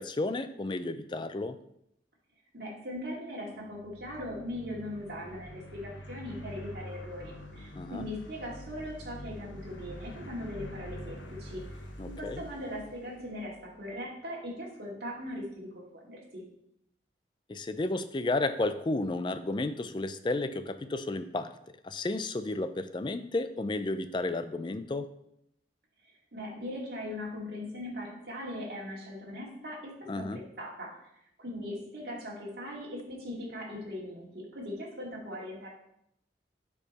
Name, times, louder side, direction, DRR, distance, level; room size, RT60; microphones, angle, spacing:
voice 1, 0.0-1.6 7.8-8.0 12.0-12.4 17.5-21.5 21.8-25.1 30.1-30.4, left 2 dB, 25° left, 12 dB, 0.3 m, -32 dB
voice 2, 2.5-11.6 12.0-16.4 26.3-31.0 31.4-35.7, left 1 dB, 60° right, -3 dB, 2.2 m, -40 dB
sound 1, 3.6-13.9, left 1 dB, 90° left, 1.0 m, -46 dB
8.0 x 4.7 x 4.1 m, 0.77 s
head